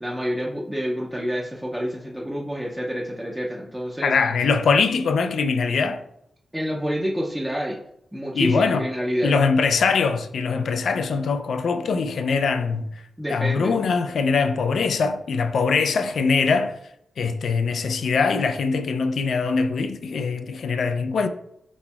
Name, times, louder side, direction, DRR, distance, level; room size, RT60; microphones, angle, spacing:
voice 1, 0.0-4.1 6.5-7.8 8.1-9.3 13.2-13.8, equal, 5° right, 0.4 m, -28 dB
voice 2, 4.0-6.0 8.3-8.9 9.2-12.9 13.3-16.7 17.2-21.3, left 5 dB, 80° left, 0.3 m, -22 dB
4.4 x 4.1 x 2.3 m
wide cardioid pair, 150°, 0 cm